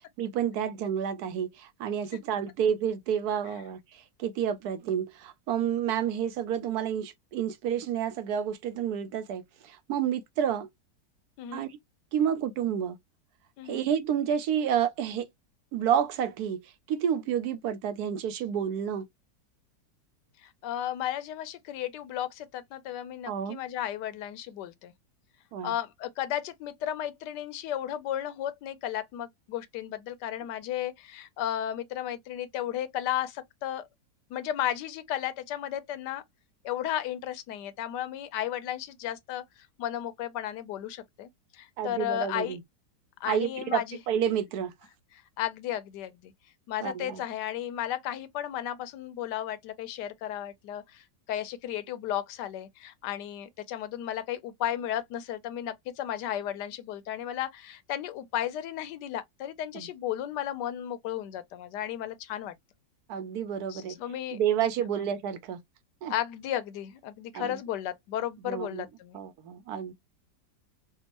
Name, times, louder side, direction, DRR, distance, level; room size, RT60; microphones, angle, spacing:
voice 1, 0.2-10.7 11.5-11.8 12.1-13.0 13.6-15.3 15.7-19.0 23.3-23.6 25.5-25.7 41.8-42.6 43.2-43.8 44.1-44.7 46.8-47.2 59.7-59.9 63.1-64.0 64.3-65.6 66.0-66.1 67.3-67.5 68.4-68.8 69.1-69.9, right 9 dB, 75° right, 1.0 m, -30 dB
voice 2, 20.4-24.9 25.6-33.8 34.3-36.2 36.6-39.4 39.8-42.6 43.2-44.0 45.4-46.3 46.7-62.6 63.7-64.4 65.0-65.1 66.1-69.2, left 11 dB, 90° left, 1.2 m, -34 dB
3.5 x 2.2 x 2.8 m
omnidirectional pair, 1.8 m